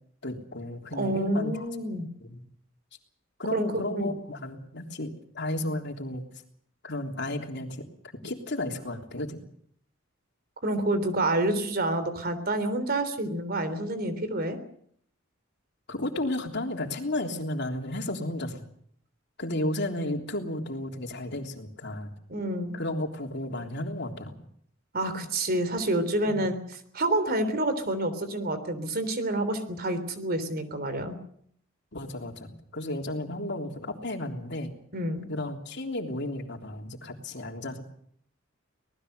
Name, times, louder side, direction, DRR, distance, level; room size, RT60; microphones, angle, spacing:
voice 1, 0.2-1.6 2.2-2.4 3.4-6.2 6.8-7.9 8.2-9.4 15.9-18.6 19.4-22.1 22.7-24.3 26.3-26.5 31.9-34.7 35.3-37.8, left 1 dB, 55° left, 3 dB, 3.4 m, -33 dB
voice 2, 0.9-2.1 3.5-4.1 10.6-14.6 22.3-22.7 24.9-31.1 34.9-35.3, right 1 dB, 50° right, 11 dB, 3.4 m, -28 dB
25.5 x 19.0 x 6.7 m, 0.65 s
head